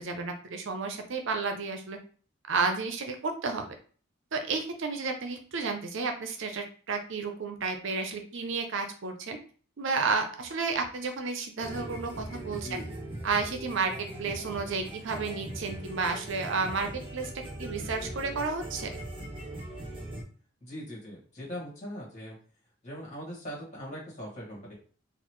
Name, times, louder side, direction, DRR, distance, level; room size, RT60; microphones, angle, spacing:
voice 1, 0.0-2.0 2.5-3.7 4.3-9.4 9.8-12.8 13.2-13.9 14.2-17.3 17.6-18.9, right 4 dB, 60° right, 5 dB, 0.5 m, -31 dB
sound 1, 11.6-20.2, right 1 dB, 25° right, 1.0 m, -40 dB
voice 2, 20.6-22.4 22.8-24.7, equal, 35° left, -4 dB, 1.8 m, -40 dB
4.0 x 2.4 x 3.1 m, 0.43 s
head